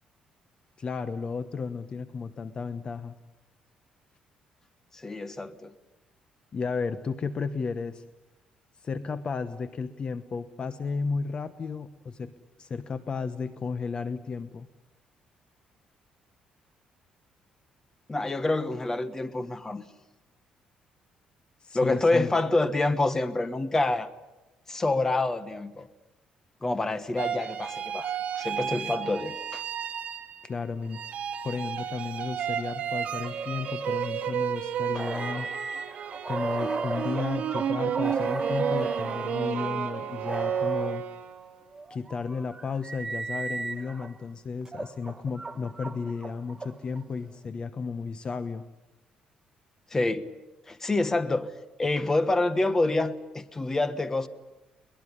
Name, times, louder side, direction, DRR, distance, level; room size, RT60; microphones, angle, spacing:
voice 1, 0.8-3.1 6.5-8.0 8.8-12.3 12.6-14.7 21.6-22.3 30.4-31.0 31.4-35.5 36.3-41.0 41.9-48.6, left 5 dB, 35° left, 11 dB, 1.0 m, -33 dB
voice 2, 4.9-5.7 18.1-19.8 21.7-24.1 24.7-25.9 26.6-29.6 34.9-35.0 49.9-50.3 50.7-51.5 51.8-54.3, left 2 dB, 15° left, 12 dB, 1.3 m, -27 dB
sound 1, 27.2-30.6 30.9-41.5, right 8 dB, 50° right, 2.5 m, -32 dB
sound 2, 35.0-39.5 40.2-41.0 41.7-44.1 44.7-47.0, right 3 dB, 15° right, 1.3 m, -35 dB
23.0 x 20.0 x 9.9 m, 1.1 s
cardioid pair, 135°, 3 cm